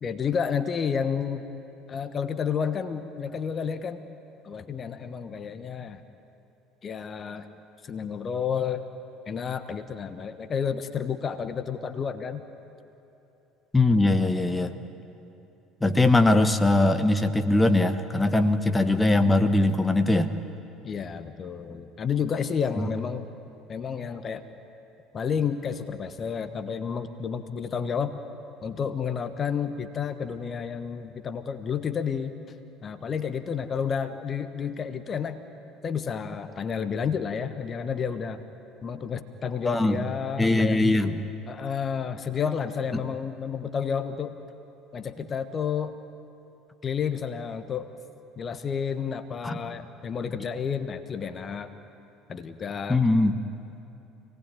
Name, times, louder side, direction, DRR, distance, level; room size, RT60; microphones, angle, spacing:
voice 1, 0.0-1.5 1.9-4.0 4.4-6.0 6.8-7.5 7.8-8.9 9.3-12.4 20.8-23.2 23.7-24.4 25.1-28.2 28.6-32.4 32.8-35.4 35.8-38.4 38.8-40.8 41.5-44.3 44.9-46.0 46.8-47.9 48.4-51.7 52.3-53.0, left 7 dB, 35° left, 10 dB, 1.3 m, -30 dB
voice 2, 13.7-14.7 15.8-20.3 22.8-22.9 39.6-40.0 40.4-41.2 49.4-49.6 52.9-53.3, left 2 dB, 10° left, 9 dB, 1.3 m, -21 dB
27.0 x 19.0 x 9.2 m, 2.8 s
figure-of-eight pair, 60°, 0 cm